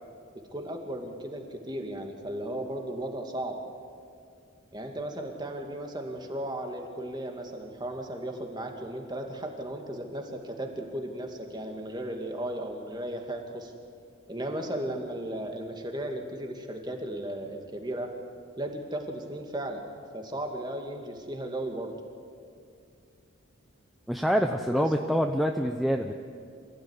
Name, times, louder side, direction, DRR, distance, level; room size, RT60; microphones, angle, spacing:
voice 1, 0.5-3.6 4.7-13.7 14.3-18.1 18.6-19.8 20.1-21.9 24.7-24.8, right 1 dB, 20° right, 3 dB, 2.3 m, -35 dB
voice 2, 24.1-26.1, equal, ahead, 4 dB, 0.7 m, -26 dB
27.0 x 16.0 x 9.8 m, 2.3 s
head